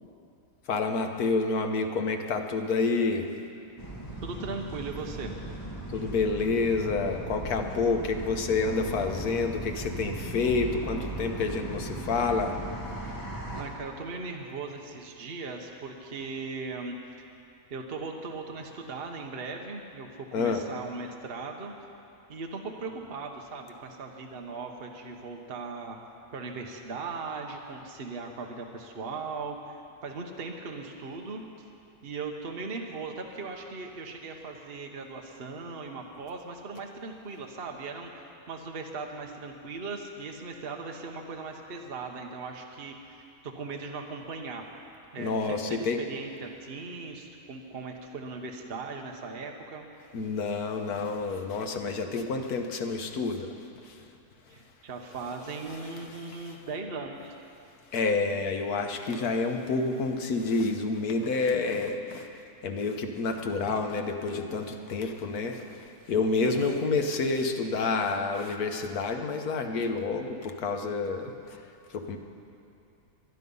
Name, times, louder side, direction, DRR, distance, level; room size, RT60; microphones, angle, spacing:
voice 1, 0.7-3.3 5.9-12.6 20.3-20.6 45.2-46.0 50.1-53.5 53.8-54.1 55.7-55.8 56.1-56.6 57.9-71.3 71.9-72.2, left 4 dB, 80° left, 5 dB, 1.5 m, -29 dB
sound 1, 3.8-13.6, right 1 dB, 15° left, 2.1 m, -37 dB
voice 2, 4.2-5.4 13.5-17.0 17.7-21.7 22.3-26.0 26.3-31.4 32.0-44.7 45.1-49.9 54.5-57.3 66.4-66.8, right 4 dB, 45° right, 2 dB, 1.2 m, -38 dB
23.0 x 10.0 x 5.5 m, 2.6 s
omnidirectional pair, 1.6 m